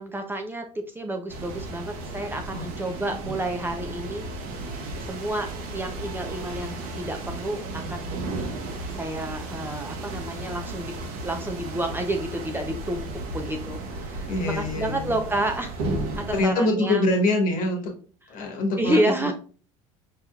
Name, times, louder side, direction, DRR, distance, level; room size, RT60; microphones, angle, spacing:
voice 1, 0.0-4.3 4.7-8.1 8.9-10.9 11.2-13.1 13.3-15.9 16.2-17.0 18.8-19.3, right 1 dB, 15° right, 4 dB, 0.6 m, -30 dB
sound 1, 1.3-16.4, right 2 dB, 65° right, 1.1 m, -34 dB
voice 2, 14.3-15.2 16.3-17.9 18.3-19.3, left 1 dB, 55° left, 2 dB, 1.3 m, -24 dB
4.9 x 2.9 x 2.3 m, 0.40 s
hypercardioid pair, 80°, 17 cm